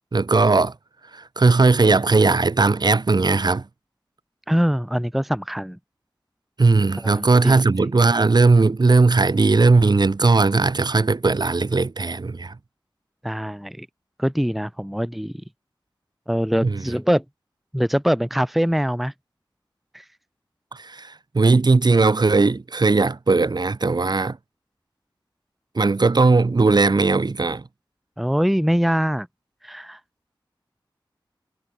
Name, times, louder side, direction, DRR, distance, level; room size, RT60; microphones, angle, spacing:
voice 1, 0.1-0.7 1.1-3.6 6.6-12.5 16.6-16.8 20.7-24.4 25.7-27.6, right 3 dB, 55° right, 1.8 m, -18 dB
voice 2, 4.5-5.8 7.0-7.9 13.2-13.9 14.2-15.3 16.3-17.2 17.7-19.1 19.9-20.0 28.2-29.3 29.6-30.0, equal, ahead, 0.7 m, -23 dB
cardioid pair, 50°, 9 cm